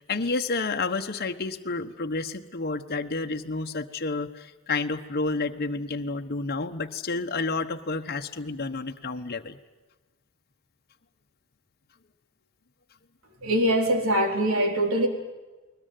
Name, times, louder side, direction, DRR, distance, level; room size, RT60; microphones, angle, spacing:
voice 1, 0.0-9.6, left 3 dB, 50° left, 5 dB, 1.2 m, -30 dB
voice 2, 13.4-15.1, right 1 dB, 70° right, 4 dB, 4.1 m, -23 dB
21.0 x 20.5 x 9.3 m, 1.2 s
head